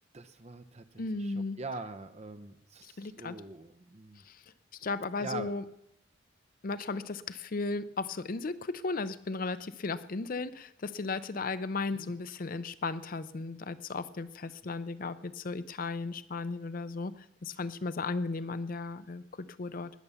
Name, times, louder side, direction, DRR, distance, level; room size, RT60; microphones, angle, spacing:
voice 1, 0.1-4.2 5.2-5.5 11.9-12.1, right 3 dB, 35° right, 10 dB, 0.8 m, -43 dB
voice 2, 1.0-1.6 3.0-3.4 4.3-4.4 4.8-5.6 6.6-17.1 17.4-19.9, left 3 dB, 45° left, 14 dB, 0.5 m, -35 dB
19.5 x 6.9 x 7.0 m, 0.79 s
head